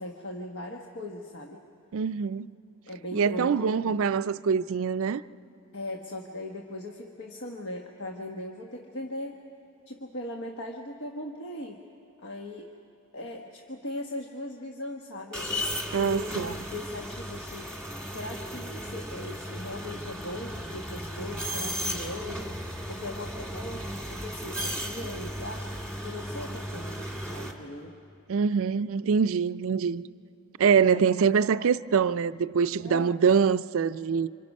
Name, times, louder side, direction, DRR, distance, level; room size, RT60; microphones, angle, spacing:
voice 1, 0.0-1.6 2.9-4.0 5.7-9.4 9.9-11.8 12.2-12.7 13.1-16.4 16.7-22.5 22.9-25.7 26.0-28.0 30.8-31.2 32.8-33.1, left 1 dB, 65° left, 1.2 m, -39 dB
voice 2, 1.9-2.5 3.1-5.2 15.9-16.5 28.3-30.0 30.6-34.3, right 6 dB, 65° right, 0.4 m, -24 dB
sound 1, 15.3-27.5, equal, 5° left, 1.8 m, -35 dB
27.5 x 26.0 x 5.4 m
head